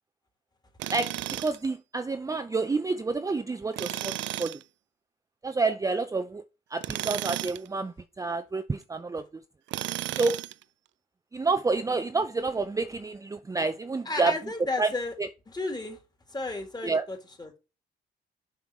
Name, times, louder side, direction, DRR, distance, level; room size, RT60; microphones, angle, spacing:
Tools, 0.8-1.7 3.7-4.6 6.8-7.7 9.7-10.6, right 14 dB, 70° right, 0.4 m, -33 dB
voice 1, 0.9-4.6 5.4-6.4 6.7-9.2 10.2-10.4 11.3-14.3 14.8-14.9 16.8-17.1, right 3 dB, 15° right, 0.5 m, -29 dB
voice 2, 14.1-15.1 15.5-16.0 16.3-17.6, left 2 dB, 20° left, 2.2 m, -33 dB
7.2 x 5.7 x 4.8 m
cardioid pair, 90°, 20 cm